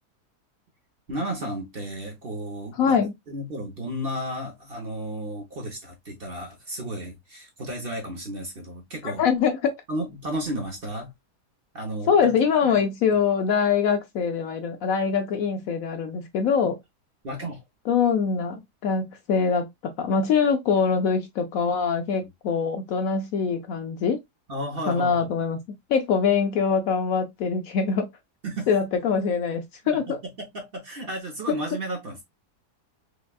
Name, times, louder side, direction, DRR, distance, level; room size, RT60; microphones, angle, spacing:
voice 1, 1.1-3.0 3.3-9.2 9.9-11.1 11.7-12.4 12.6-13.2 16.6-16.7 17.2-17.6 22.2-22.3 24.5-25.3 28.4-28.7 29.8-32.2, right 1 dB, 40° right, 1.0 m, -33 dB
voice 2, 2.8-3.1 9.0-9.8 12.1-16.8 17.9-24.2 24.9-25.6 25.9-28.1 28.7-30.2, left 6 dB, 70° left, 0.9 m, -23 dB
5.1 x 2.3 x 2.3 m
omnidirectional pair, 1.7 m